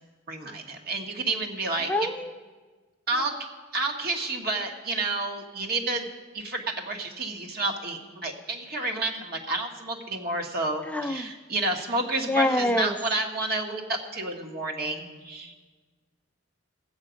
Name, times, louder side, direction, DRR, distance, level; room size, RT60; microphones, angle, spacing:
voice 1, 0.3-1.9 3.1-3.3 3.7-6.1 6.3-15.6, right 2 dB, 50° right, 2 dB, 1.4 m, -30 dB
voice 2, 1.9-2.3 3.2-3.3 10.8-11.3 12.3-13.0, left 1 dB, 5° left, 6 dB, 0.5 m, -26 dB
16.5 x 7.9 x 5.1 m, 1.4 s
head